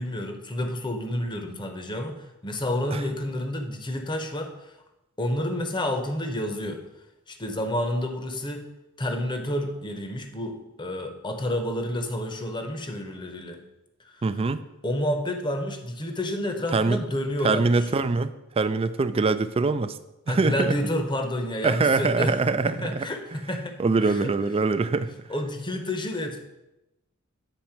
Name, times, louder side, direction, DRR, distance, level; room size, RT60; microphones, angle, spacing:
voice 1, 0.0-4.5 5.2-6.8 7.3-8.6 9.0-13.7 14.1-14.2 14.8-17.9 20.3-22.4 22.7-24.3 25.3-26.4, left 1 dB, 20° left, 5 dB, 0.8 m, -29 dB
voice 2, 14.2-14.6 16.7-17.0 17.4-20.0 20.3-20.8 21.6-23.1 23.8-25.1, right 3 dB, 25° right, 12 dB, 0.4 m, -23 dB
9.0 x 4.1 x 5.8 m, 0.96 s
head